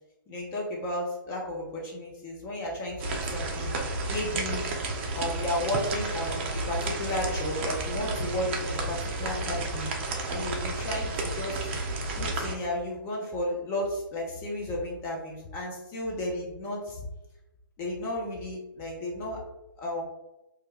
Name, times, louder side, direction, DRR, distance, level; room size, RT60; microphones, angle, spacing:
voice 1, 0.3-3.7 4.1-4.6 5.1-11.6 12.2-17.0 17.8-19.4 19.8-20.0, left 1 dB, 20° left, -2 dB, 0.5 m, -33 dB
sound 1, 3.0-12.6, right 2 dB, 35° right, 0.4 m, -32 dB
2.3 x 2.1 x 3.4 m, 0.97 s
figure-of-eight pair, 135°, 12 cm